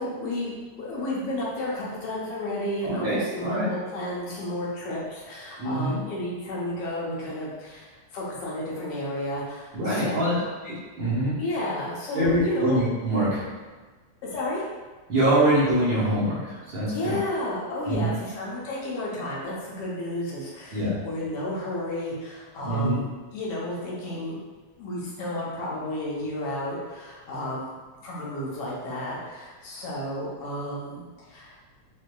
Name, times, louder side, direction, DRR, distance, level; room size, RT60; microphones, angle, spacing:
voice 1, 0.0-10.4 11.4-12.8 14.2-14.6 16.9-23.1 23.3-24.4 24.8-27.7 28.0-31.6, left 1 dB, 70° left, -5 dB, 1.5 m, -32 dB
voice 2, 2.8-3.7 5.6-6.0 9.7-10.3 10.6-11.4 12.1-13.4 15.1-17.2 17.9-18.1 20.7-21.0 22.6-23.0, right 1 dB, 55° right, -10 dB, 1.4 m, -24 dB
6.4 x 2.7 x 2.2 m, 1.4 s
omnidirectional pair, 3.3 m